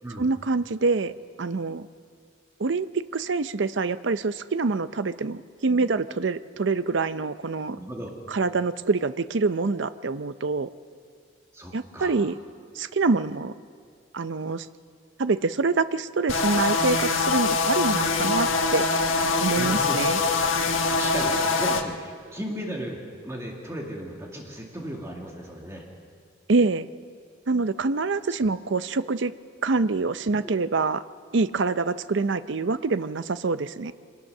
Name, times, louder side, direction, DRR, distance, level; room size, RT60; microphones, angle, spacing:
voice 1, 0.2-1.1 1.4-1.9 2.6-7.8 8.3-10.7 11.7-12.4 12.7-13.5 14.1-14.7 15.2-18.9 19.4-20.2 26.5-26.9 27.5-29.3 29.6-31.0 31.3-33.9, right 3 dB, 65° right, 13 dB, 0.6 m, -25 dB
voice 2, 7.7-8.1 11.5-12.2 19.6-20.1 20.9-25.8 30.4-30.5, equal, 15° right, -1 dB, 2.0 m, -35 dB
sound 1, 16.3-21.8, left 4 dB, 85° left, 1.4 m, -23 dB
25.0 x 18.5 x 6.6 m, 2.1 s
head